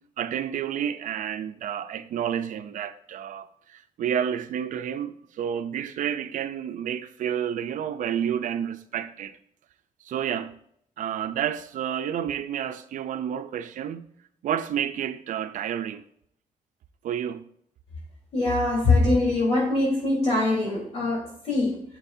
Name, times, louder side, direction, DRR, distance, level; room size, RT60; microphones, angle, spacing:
voice 1, 0.2-9.4 10.0-10.6 11.0-14.1 14.4-16.0 17.0-17.4, right 9 dB, 80° right, 0.6 m, -30 dB
voice 2, 18.3-21.8, left 2 dB, 50° left, 3.8 m, -23 dB
9.9 x 7.5 x 2.7 m
cardioid pair, 145°, 13 cm